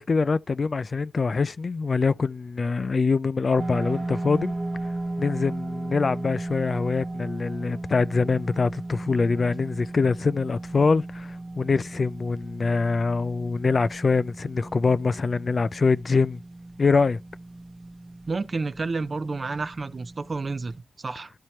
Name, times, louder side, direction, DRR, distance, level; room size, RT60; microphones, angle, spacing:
voice 1, 0.0-4.5 5.2-16.4 16.8-17.2, left 4 dB, 50° left, 0.3 m, -24 dB
sound 1, 3.6-20.8, right 2 dB, 20° right, 0.9 m, -36 dB
voice 2, 18.3-21.3, right 3 dB, 45° right, 0.6 m, -30 dB
12.5 x 4.4 x 3.0 m
wide cardioid pair, 80°, 0 cm